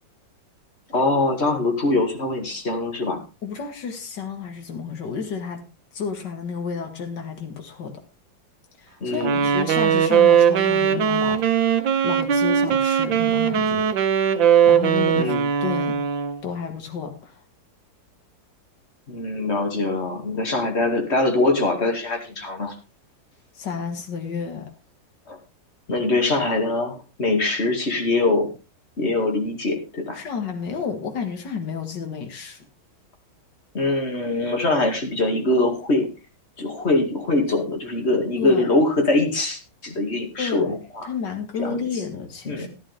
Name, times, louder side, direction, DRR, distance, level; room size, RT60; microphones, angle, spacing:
voice 1, 0.9-3.2 9.0-9.5 15.2-15.4 19.1-22.7 25.3-25.4 25.9-28.5 29.0-30.2 33.7-36.1 36.6-41.1 41.6-41.8 42.5-42.7, left 2 dB, 35° left, 4 dB, 2.5 m, -23 dB
voice 2, 3.4-5.6 5.9-7.9 8.8-11.4 12.0-14.2 14.7-16.0 16.4-17.4 23.5-24.7 30.1-32.7 38.4-38.7 40.4-40.7 41.0-42.7, left 6 dB, 65° left, 5 dB, 2.6 m, -31 dB
Wind instrument woodwind instrument, 9.2-16.4, right 8 dB, 85° right, 1.8 m, -19 dB
13.5 x 11.0 x 3.5 m, 0.29 s
omnidirectional pair, 2.0 m